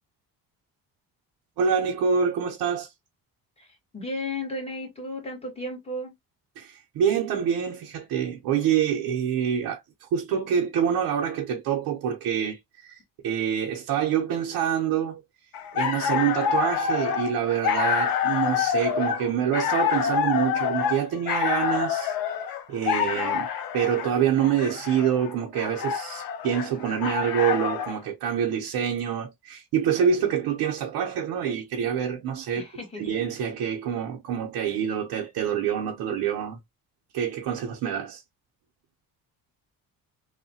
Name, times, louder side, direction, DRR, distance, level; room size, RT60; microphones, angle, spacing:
voice 1, 1.6-2.9 6.6-15.2 15.7-22.1 22.7-23.5 23.7-32.7 33.0-36.6 37.1-38.2, right 8 dB, 85° right, 0.7 m, -26 dB
voice 2, 3.9-6.1 32.5-33.1, left 1 dB, 15° left, 1.3 m, -34 dB
sound 1, 15.5-28.0, left 8 dB, 70° left, 0.7 m, -27 dB
3.0 x 2.2 x 2.6 m
cardioid pair, 140°, 36 cm